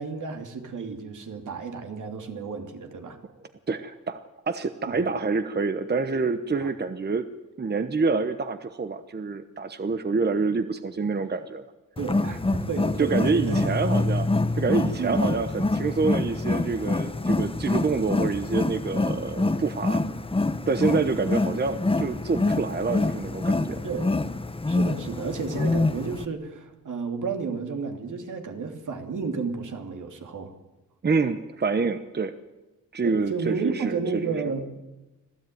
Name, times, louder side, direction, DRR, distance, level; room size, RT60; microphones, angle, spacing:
voice 1, 0.0-3.2 4.9-5.0 6.6-6.7 12.0-13.7 15.0-15.3 23.8-24.1 24.7-30.5 33.0-34.7, right 5 dB, 70° right, 5 dB, 2.8 m, -32 dB
voice 2, 3.7-4.2 4.5-7.2 7.6-11.6 13.0-14.3 14.5-20.0 20.7-23.8 31.0-32.3 32.9-34.4, right 4 dB, 30° right, 10 dB, 1.0 m, -27 dB
Wild animals, 12.0-26.3, left 2 dB, 15° left, 1.0 m, -26 dB
26.0 x 16.0 x 9.4 m, 1.1 s
wide cardioid pair, 125°, 32 cm